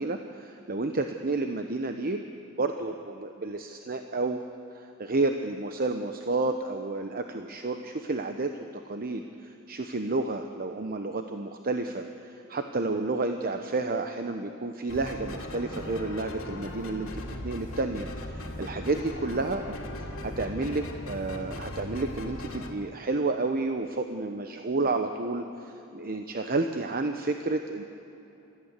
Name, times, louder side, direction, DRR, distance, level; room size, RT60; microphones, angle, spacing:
voice 1, 0.0-2.2 2.6-4.4 4.7-27.8, right 3 dB, 45° right, 6 dB, 0.9 m, -31 dB
sound 1, 14.9-22.7, left 1 dB, 75° left, 2.7 m, -38 dB
28.5 x 14.5 x 8.2 m, 3.0 s
head